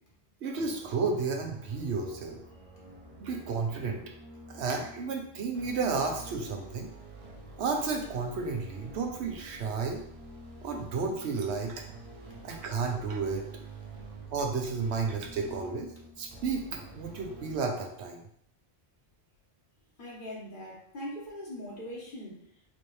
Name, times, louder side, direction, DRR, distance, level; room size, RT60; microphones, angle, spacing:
voice 1, 0.4-2.4 3.2-4.0 4.5-6.9 7.5-10.0 10.6-11.8 12.4-13.5 14.3-15.9 16.2-18.2, right 4 dB, 85° right, 3 dB, 1.0 m, -32 dB
sound 1, 0.6-17.6, right 2 dB, 40° right, 0.6 m, -48 dB
voice 2, 20.0-22.4, left 1 dB, 55° left, -4 dB, 1.3 m, -41 dB
4.1 x 2.7 x 3.1 m, 0.66 s
omnidirectional pair, 1.1 m